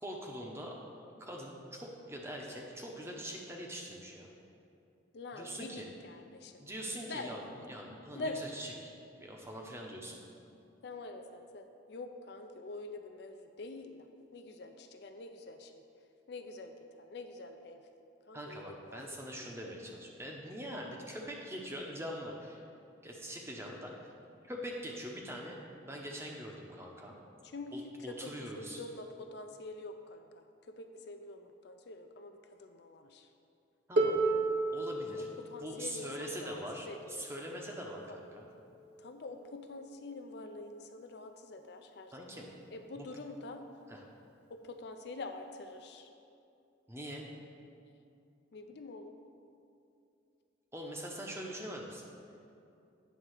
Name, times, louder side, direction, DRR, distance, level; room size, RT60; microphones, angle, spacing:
voice 1, 0.0-0.7 1.3-4.3 5.3-5.9 6.6-8.7 9.2-10.2 18.3-22.6 23.0-23.9 24.4-25.6 25.8-27.1 27.7-28.8 33.9-34.2 34.7-35.3 35.6-38.5 42.1-42.5 42.9-43.1 43.9-44.0 46.9-47.2 50.7-52.0, equal, 15° right, -1 dB, 0.7 m, -43 dB
voice 2, 5.1-6.7 7.1-7.5 8.1-8.4 10.8-14.1 14.3-15.8 16.3-16.7 17.0-17.8 18.3-19.0 19.4-19.5 27.4-33.3 35.2-35.3 35.5-36.6 36.9-37.3 37.9-38.2 39.0-42.5 42.7-43.6 44.5-46.1 48.5-49.1, left 2 dB, 55° left, 6 dB, 0.4 m, -46 dB
Harp, 34.0-39.8 40.8-40.9, right 3 dB, 55° right, 0.6 m, -35 dB
9.1 x 3.6 x 6.4 m, 2.6 s
head